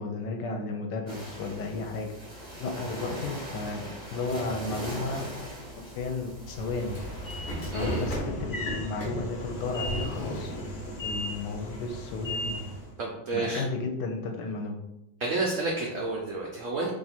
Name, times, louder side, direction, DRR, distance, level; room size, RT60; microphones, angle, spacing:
voice 1, 0.0-2.1 2.6-5.3 5.8-7.0 7.6-10.5 11.0-12.6 13.3-14.8, left 3 dB, 75° left, 2 dB, 1.2 m, -33 dB
sound 1, 1.1-8.2, right 1 dB, 25° right, 0.5 m, -40 dB
Train / Sliding door, 6.4-12.9, left 1 dB, 55° left, 0.7 m, -34 dB
voice 2, 7.7-8.1 13.0-13.6 15.2-16.9, right 3 dB, 80° right, -2 dB, 0.7 m, -30 dB
2.9 x 2.4 x 4.2 m, 0.91 s
omnidirectional pair, 2.0 m